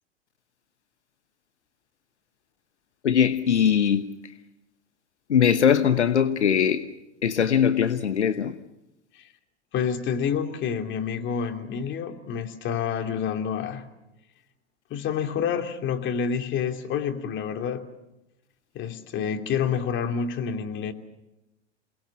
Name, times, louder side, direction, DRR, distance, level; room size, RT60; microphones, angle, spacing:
voice 1, 3.0-4.3 5.3-6.8 7.2-8.6, left 8 dB, 80° left, 1.2 m, -21 dB
voice 2, 9.7-13.8 14.9-17.8 18.7-20.9, left 7 dB, 35° left, 2.8 m, -28 dB
28.0 x 19.5 x 7.4 m
hypercardioid pair, 100°, 34 cm